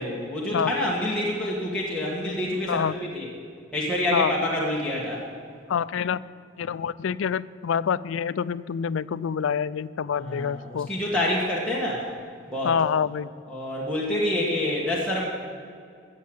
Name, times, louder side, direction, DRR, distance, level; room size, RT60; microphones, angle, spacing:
voice 1, 0.0-2.8 3.1-3.3 3.7-5.2 10.2-12.1 12.5-12.7 13.5-15.2, left 1 dB, 5° left, -6 dB, 1.6 m, -27 dB
voice 2, 5.7-6.2 6.6-10.9 12.6-13.3, left 7 dB, 75° left, 18 dB, 0.4 m, -26 dB
15.0 x 7.4 x 7.9 m, 2.3 s
head